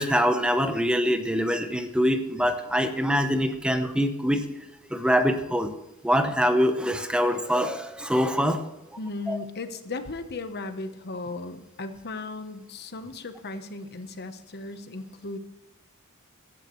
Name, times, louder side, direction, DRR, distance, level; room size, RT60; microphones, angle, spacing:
voice 1, 0.0-4.4 4.8-5.7 6.0-8.6 8.9-9.0 9.3-9.4, equal, 5° right, 7 dB, 0.8 m, -24 dB
voice 2, 9.0-15.4, left 3 dB, 50° left, 9 dB, 1.0 m, -36 dB
16.5 x 12.0 x 3.2 m, 0.96 s
head